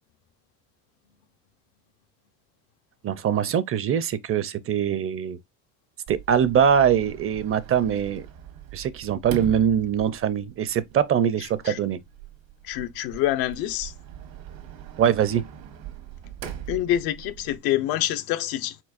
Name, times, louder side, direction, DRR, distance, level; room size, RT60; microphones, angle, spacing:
voice 1, 3.0-5.4 6.1-8.3 8.7-12.0 15.0-15.4, right 8 dB, 40° right, 0.5 m, -23 dB
Sliding door, 6.1-17.6, right 9 dB, 75° right, 1.3 m, -41 dB
voice 2, 12.6-13.9 16.7-18.8, left 13 dB, 80° left, 0.7 m, -26 dB
4.5 x 4.5 x 2.4 m
cardioid pair, 120°, 35 cm